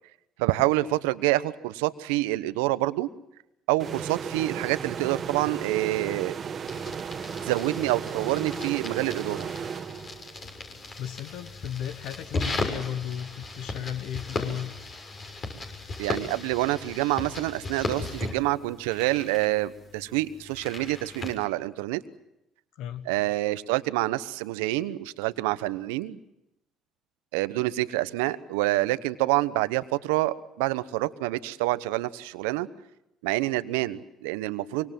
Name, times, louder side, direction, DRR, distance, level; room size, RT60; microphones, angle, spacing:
voice 1, 0.4-3.1 3.7-6.3 7.4-9.5 16.0-22.0 23.1-26.2 27.3-32.7 33.2-34.9, right 18 dB, 80° right, 14 dB, 1.0 m, -27 dB
sound 1, 3.8-10.5, right 7 dB, 45° right, 1.4 m, -35 dB
sound 2, 6.7-21.4, left 3 dB, 45° left, 6.7 m, -37 dB
voice 2, 11.0-14.7 22.7-23.1, left 10 dB, 70° left, 12 dB, 1.3 m, -35 dB
24.5 x 24.0 x 7.6 m, 0.87 s
hypercardioid pair, 60°, 0 cm